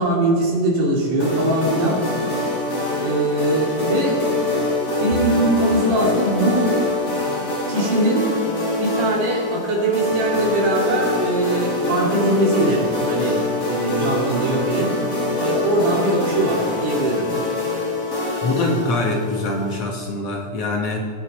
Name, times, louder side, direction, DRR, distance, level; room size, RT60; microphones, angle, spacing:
voice 1, 0.0-2.0 3.0-4.2 5.0-6.8 7.7-8.2 8.8-14.9 15.4-17.3, right 1 dB, 70° right, -2 dB, 3.9 m, -21 dB
sound 1, 1.2-19.8, left 2 dB, 20° left, 3.1 m, -24 dB
voice 2, 18.4-21.1, left 2 dB, 60° left, 0 dB, 1.8 m, -24 dB
19.0 x 8.2 x 4.1 m, 2.1 s
omnidirectional pair, 3.8 m